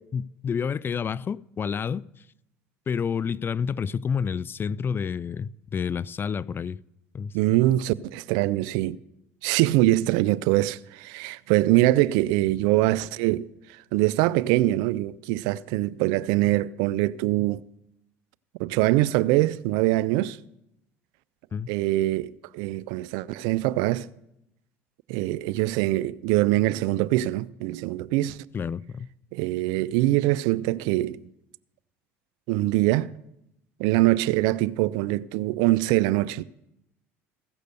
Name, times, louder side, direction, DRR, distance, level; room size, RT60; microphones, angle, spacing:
voice 1, 0.1-2.3 2.9-6.8 7.1-7.3 21.5-21.7 28.5-29.1, left 6 dB, 30° left, 0.3 m, -29 dB
voice 2, 7.3-9.0 9.4-17.6 18.6-20.4 21.7-24.1 25.1-28.4 29.3-31.2 32.5-33.1 33.8-36.4, right 17 dB, 70° right, 0.4 m, -23 dB
15.5 x 6.6 x 6.7 m
hypercardioid pair, 75°, 7 cm